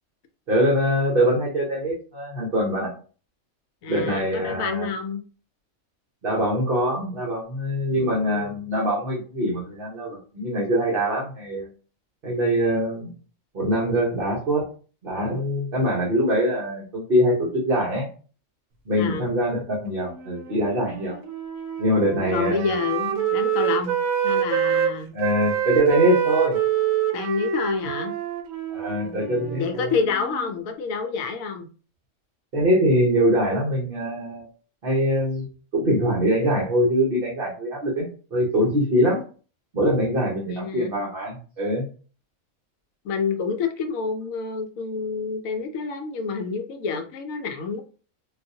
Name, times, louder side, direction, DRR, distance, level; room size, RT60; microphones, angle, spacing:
voice 1, 0.5-2.9 3.9-4.9 6.2-11.7 12.2-13.1 13.5-14.6 15.0-18.1 18.9-21.1 21.8-22.7 25.1-26.6 28.7-29.9 32.5-34.5 34.8-35.5 35.7-39.2 39.7-41.8, equal, 45° right, -4 dB, 1.1 m, -23 dB
voice 2, 3.8-5.2 8.0-8.6 18.9-19.3 22.3-23.9 24.2-25.1 27.1-28.1 28.9-31.7 40.5-40.9 43.0-47.8, left 5 dB, 75° left, 5 dB, 1.0 m, -28 dB
Wind instrument woodwind instrument, 20.0-24.9 25.2-30.5, right 9 dB, 75° right, 1.0 m, -26 dB
3.8 x 2.5 x 2.7 m, 0.38 s
omnidirectional pair, 1.5 m